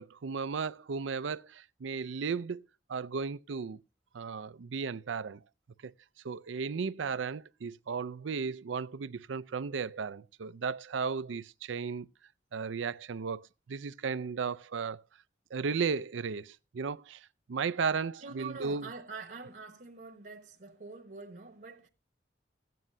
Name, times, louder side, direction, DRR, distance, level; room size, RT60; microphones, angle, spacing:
voice 1, 0.0-2.6 2.9-3.8 4.1-5.4 5.8-5.9 6.2-12.1 12.5-15.0 15.5-18.9, right 5 dB, 90° right, 0.5 m, -35 dB
voice 2, 18.2-21.9, right 4 dB, 50° right, 1.1 m, -45 dB
16.0 x 9.3 x 2.6 m
head